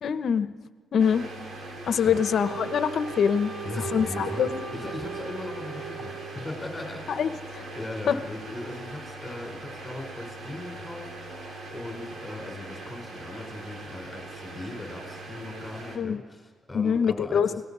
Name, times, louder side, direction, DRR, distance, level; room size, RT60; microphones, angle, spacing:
voice 1, 0.0-0.5 0.9-1.3 1.9-3.5 3.9-4.6 7.1-7.6 8.1-8.2 15.9-16.2 16.7-17.5, left 7 dB, 60° left, 11 dB, 1.0 m, -24 dB
sound 1, 1.0-16.0, right 2 dB, 60° right, 4.0 m, -41 dB
Wind instrument woodwind instrument, 2.1-6.7, right 6 dB, 80° right, 4.5 m, -39 dB
voice 2, 3.6-7.3 7.7-17.6, left 2 dB, 15° left, 3 dB, 4.7 m, -39 dB
29.5 x 19.0 x 5.6 m, 1.5 s
cardioid pair, 105°, 0 cm